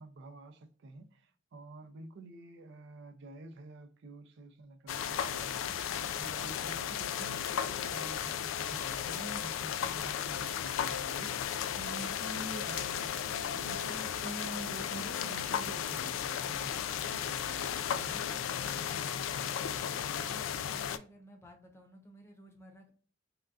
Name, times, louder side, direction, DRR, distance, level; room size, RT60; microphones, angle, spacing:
voice 1, 0.0-18.2, right 2 dB, 65° right, 0.4 m, -48 dB
sound 1, 4.9-21.0, left 9 dB, 90° left, 0.3 m, -35 dB
voice 2, 19.9-22.9, equal, 15° left, 0.7 m, -56 dB
3.6 x 2.3 x 2.4 m
head